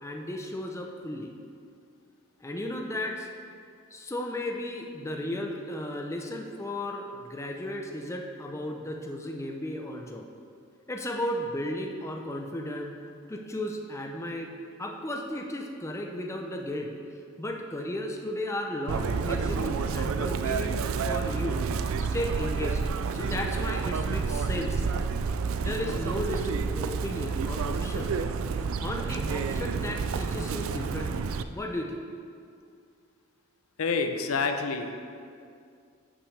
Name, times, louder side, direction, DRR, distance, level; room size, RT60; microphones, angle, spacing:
voice 1, 0.0-1.3 2.4-3.3 3.9-10.3 10.9-13.0 13.3-14.5 14.8-16.9 17.4-21.6 22.1-22.8 23.1-24.8 25.6-28.2 28.8-31.2 31.5-32.0, left 1 dB, 15° left, 2 dB, 0.5 m, -34 dB
Chirp tweet, 18.9-31.4, right 5 dB, 70° right, 0.4 m, -29 dB
voice 2, 33.8-34.9, left 4 dB, 85° left, 6 dB, 0.6 m, -28 dB
11.0 x 6.1 x 3.3 m, 2.3 s
head